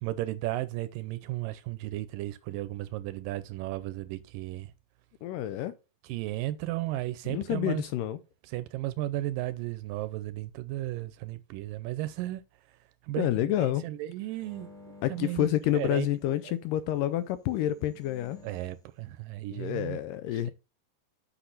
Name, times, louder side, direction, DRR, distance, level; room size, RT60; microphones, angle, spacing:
voice 1, 0.0-4.7 6.0-7.9 8.4-12.4 12.7-12.8 13.0-14.7 15.1-16.1 16.4-16.5 18.4-20.0 20.3-20.5, right 16 dB, 80° right, 2.1 m, -35 dB
voice 2, 5.2-5.7 7.3-8.2 13.2-13.8 15.0-18.4 19.5-20.5, left 12 dB, 80° left, 2.0 m, -28 dB
sound 1, 14.4-16.3 17.3-18.8, left 3 dB, 5° left, 0.3 m, -53 dB
8.0 x 6.1 x 3.9 m
omnidirectional pair, 4.2 m